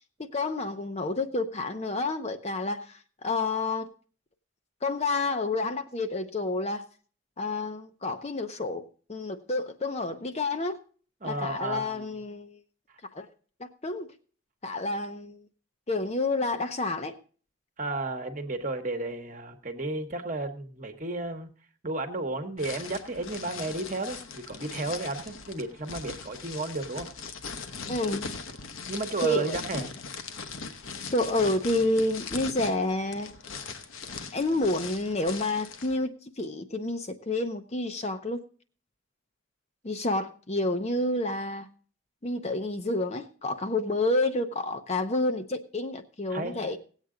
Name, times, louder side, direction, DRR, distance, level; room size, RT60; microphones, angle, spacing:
voice 1, 0.2-3.9 4.8-6.9 7.4-10.8 11.2-12.6 13.1-13.3 13.6-14.1 14.6-15.4 15.9-17.2 27.9-28.3 29.2-29.6 31.1-33.3 34.3-38.4 39.8-41.7 42.2-46.8, left 2 dB, 30° left, 0.7 m, -29 dB
voice 2, 11.2-12.1 17.8-21.5 21.8-27.1 28.9-29.9 46.3-46.5, right 2 dB, 35° right, 1.1 m, -33 dB
sound 1, 22.6-36.0, left 5 dB, 75° left, 1.0 m, -40 dB
17.5 x 8.2 x 3.7 m
head